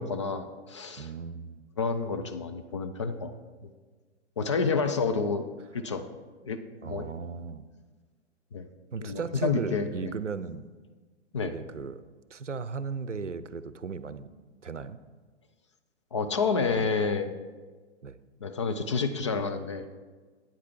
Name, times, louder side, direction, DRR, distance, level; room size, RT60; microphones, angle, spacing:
voice 1, 0.0-1.1 1.8-3.3 3.6-3.7 4.4-5.5 5.7-6.0 6.4-7.1 8.5-8.7 9.0-10.1 11.3-11.5 16.1-17.3 18.4-19.9, left 4 dB, 25° left, 7 dB, 0.4 m, -29 dB
voice 2, 1.0-1.6 6.8-7.7 8.9-10.7 11.4-12.0 12.3-14.3 14.6-15.0 16.7-16.9 18.0-18.2, right 5 dB, 85° right, 14 dB, 0.6 m, -36 dB
9.0 x 8.1 x 4.4 m, 1.4 s
figure-of-eight pair, 115°, 36 cm